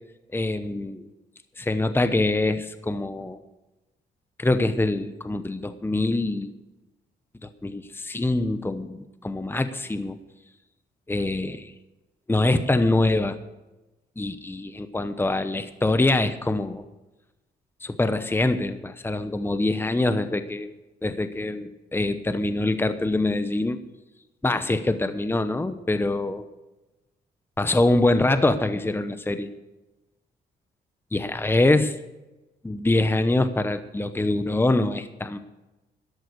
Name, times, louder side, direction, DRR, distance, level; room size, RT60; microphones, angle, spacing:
voice 1, 0.3-1.1 1.6-3.4 4.4-6.5 7.4-10.2 11.1-11.7 12.3-13.4 14.2-16.8 17.8-20.7 21.0-23.8 24.4-26.4 27.6-29.5 31.1-31.9 32.6-35.4, left 2 dB, 10° left, 11 dB, 0.9 m, -24 dB
13.0 x 11.0 x 6.6 m, 1.0 s
cardioid pair, 75°, 19 cm